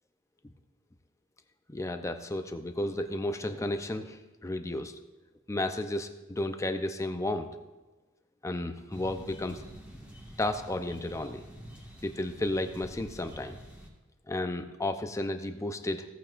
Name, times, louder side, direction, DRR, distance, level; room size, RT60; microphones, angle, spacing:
voice 1, 1.7-4.9 5.5-7.5 8.4-9.6 10.4-11.4 12.0-13.6 14.3-16.0, left 1 dB, 15° left, 7 dB, 0.6 m, -33 dB
sound 1, 8.9-13.9, equal, 5° right, 1.7 m, -48 dB
16.0 x 8.8 x 2.5 m, 1.2 s
head